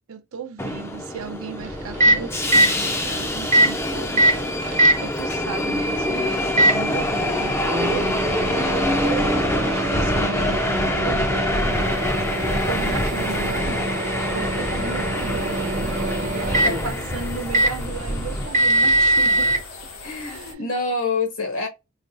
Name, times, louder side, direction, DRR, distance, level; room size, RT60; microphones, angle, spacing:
voice 1, 0.1-19.6 20.2-20.7, right 5 dB, 75° right, 0.6 m, -35 dB
Subway metro underground, 0.6-18.5, left 1 dB, 10° left, 0.5 m, -26 dB
Microwave oven, 1.6-19.6, right 1 dB, 35° right, 0.7 m, -23 dB
sound 1, 11.5-20.5, left 4 dB, 90° left, 1.5 m, -40 dB
voice 2, 20.0-21.7, left 3 dB, 70° left, 1.3 m, -26 dB
4.9 x 2.3 x 2.6 m
head